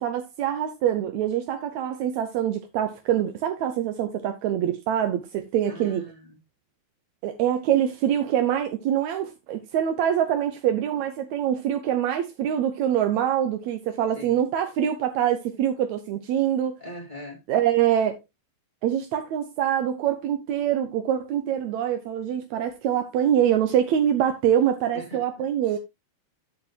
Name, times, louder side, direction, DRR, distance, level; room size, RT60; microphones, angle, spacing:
voice 1, 0.0-6.1 7.2-16.8 17.5-18.2 18.8-25.8, right 10 dB, 70° right, 1.8 m, -24 dB
voice 2, 5.7-6.2 14.1-14.4 16.8-17.4 24.9-25.2, equal, 15° left, 1.8 m, -40 dB
15.0 x 5.0 x 2.9 m
omnidirectional pair, 4.0 m